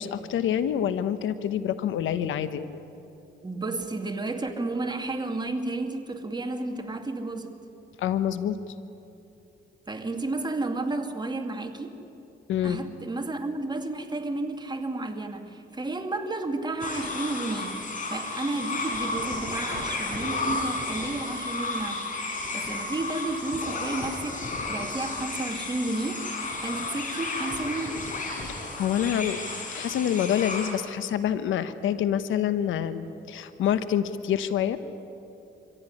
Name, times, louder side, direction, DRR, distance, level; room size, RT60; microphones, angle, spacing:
voice 1, 0.0-2.6 8.0-8.6 12.5-12.8 28.4-29.4 29.7-34.8, left 9 dB, 80° left, 12 dB, 1.2 m, -27 dB
voice 2, 3.4-7.6 9.9-12.0 12.6-26.3 26.6-28.0, right 2 dB, 20° right, 5 dB, 2.4 m, -32 dB
sound 1, 16.8-30.7, left 3 dB, 40° left, 5.1 m, -33 dB
25.0 x 15.5 x 10.0 m, 2.8 s
cardioid pair, 90°, 20 cm